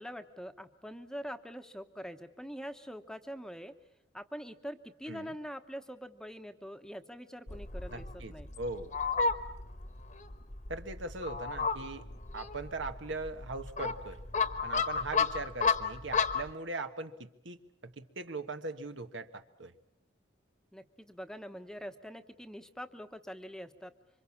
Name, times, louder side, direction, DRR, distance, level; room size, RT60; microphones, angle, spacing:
voice 1, 0.0-3.7 4.1-8.5 20.7-23.9, equal, 5° left, 8 dB, 1.0 m, -44 dB
Fowl, 7.5-16.5, left 5 dB, 40° left, 1.2 m, -33 dB
voice 2, 7.9-8.9 10.7-12.0 12.3-14.2 14.6-19.7, right 3 dB, 75° right, 8 dB, 1.5 m, -40 dB
27.5 x 25.0 x 7.3 m, 0.76 s
head